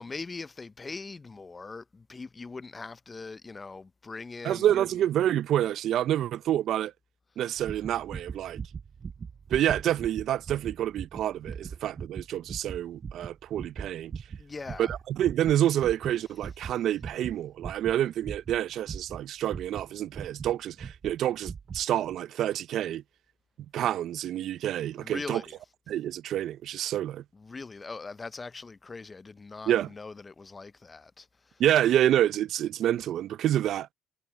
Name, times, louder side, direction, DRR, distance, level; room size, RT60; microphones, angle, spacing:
voice 1, 0.0-4.8 14.4-14.9 25.0-25.5 27.3-31.6, left 4 dB, 30° left, 0.6 m, -41 dB
voice 2, 4.4-6.9 7.4-8.6 9.5-14.1 14.8-23.0 23.7-25.4 25.9-27.2 29.7-29.9 31.6-33.9, right 11 dB, 65° right, 0.5 m, -28 dB
sound 1, 7.6-20.5 20.8-21.2 21.4-21.8 22.1-22.2, right 6 dB, 45° right, 5.3 m, -40 dB
supercardioid pair, 65°, 0 cm